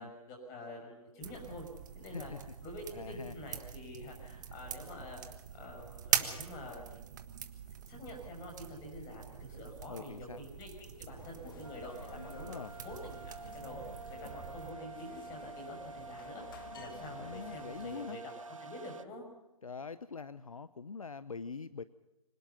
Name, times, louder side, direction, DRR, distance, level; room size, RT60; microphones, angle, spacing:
voice 1, 0.0-1.7 1.9-2.3 2.6-5.2 5.5-7.0 7.8-12.0 12.2-12.5 12.8-13.8 14.1-18.3 18.6-19.2, left 1 dB, 15° left, 2 dB, 6.1 m, -47 dB
sound 1, 1.2-14.7, right 9 dB, 30° right, 1.5 m, -42 dB
voice 2, 2.1-2.4 2.9-3.5 9.9-10.4 12.5-12.7 17.0-18.2 19.6-21.8, left 5 dB, 65° left, 16 dB, 0.9 m, -44 dB
sound 2, 11.2-18.1, left 6 dB, 35° left, 2.2 m, -53 dB
sound 3, 11.6-19.0, right 4 dB, 60° right, 1.0 m, -48 dB
25.5 x 18.5 x 5.7 m, 0.98 s
figure-of-eight pair, 140°, 19 cm